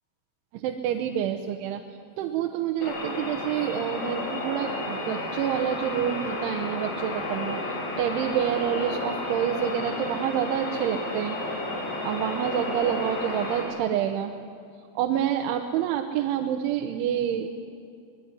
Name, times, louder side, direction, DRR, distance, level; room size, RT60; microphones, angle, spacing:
voice 1, 0.5-1.8 2.2-11.4 12.0-14.3 15.0-17.5, right 10 dB, 85° right, 4 dB, 3.4 m, -28 dB
sound 1, 2.8-13.6, left 2 dB, 80° left, 7.4 m, -32 dB
25.5 x 21.0 x 9.8 m, 2.4 s
omnidirectional pair, 5.5 m